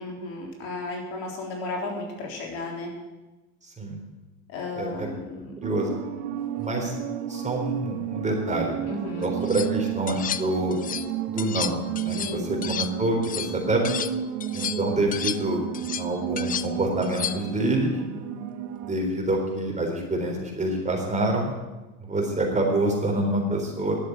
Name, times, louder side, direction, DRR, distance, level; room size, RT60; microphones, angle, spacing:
voice 1, 0.0-2.9 4.5-5.5 8.9-9.3 12.1-12.5, left 2 dB, 65° left, 0 dB, 3.8 m, -34 dB
voice 2, 4.8-5.1 5.6-5.9 6.6-6.9 7.3-8.8 9.2-10.8 11.3-11.8 12.0-12.2 12.7-13.8 14.5-15.6 16.0-17.9 18.8-21.5 22.0-24.0, right 1 dB, 15° right, 1 dB, 3.8 m, -26 dB
sound 1, 5.6-18.9, right 9 dB, 75° right, 1.2 m, -32 dB
sound 2, 9.2-9.7 10.1-11.1 11.4-14.1 14.4-17.6, left 9 dB, 20° left, 0.5 m, -33 dB
11.5 x 7.7 x 9.4 m, 1.1 s
hypercardioid pair, 90°, 41 cm